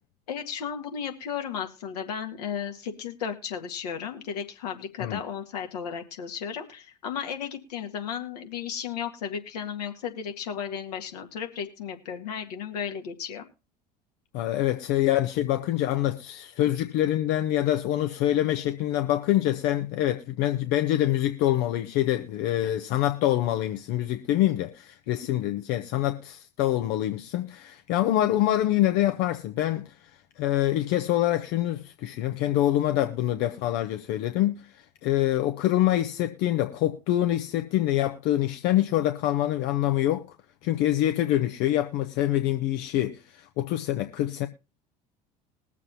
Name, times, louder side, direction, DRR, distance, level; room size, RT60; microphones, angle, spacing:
voice 1, 0.3-13.5, left 7 dB, 70° left, 2.0 m, -34 dB
voice 2, 14.3-30.1 30.4-40.4 40.6-44.5, left 13 dB, 55° left, 0.9 m, -25 dB
21.0 x 7.4 x 2.7 m
figure-of-eight pair, 65°, 21 cm